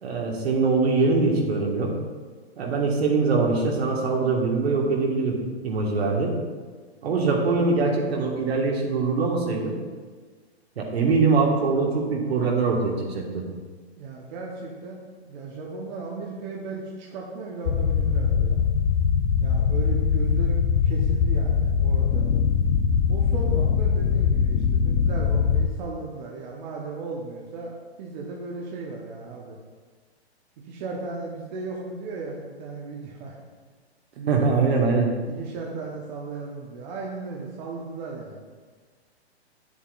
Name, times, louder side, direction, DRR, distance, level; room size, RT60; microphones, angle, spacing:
voice 1, 0.0-1.9 2.6-5.4 5.6-6.3 7.0-9.8 10.8-13.4 34.3-35.1, right 4 dB, 70° right, -1 dB, 1.8 m, -23 dB
voice 2, 14.0-15.0 15.2-18.6 19.4-22.3 23.1-29.6 30.6-33.4 34.2-34.9 35.3-38.4, right 3 dB, 45° right, -2 dB, 1.1 m, -36 dB
sound 1, 17.7-25.7, left 6 dB, 50° left, 0.6 m, -22 dB
9.2 x 7.2 x 2.6 m, 1.5 s
hypercardioid pair, 135°, 33 cm